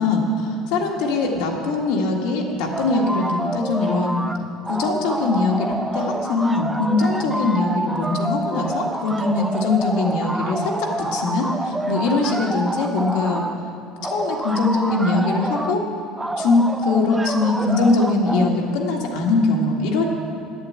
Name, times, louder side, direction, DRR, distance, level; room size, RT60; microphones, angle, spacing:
voice 1, 0.0-4.3 4.7-10.7 11.0-13.4 14.0-15.8 16.4-20.1, left 3 dB, 75° left, 0 dB, 1.8 m, -21 dB
sound 1, 2.7-4.4 4.6-13.6 14.0-15.8 16.2-18.5, right 1 dB, 5° right, 0.4 m, -27 dB
11.0 x 8.0 x 8.3 m, 2.5 s
cardioid pair, 155°, 0 cm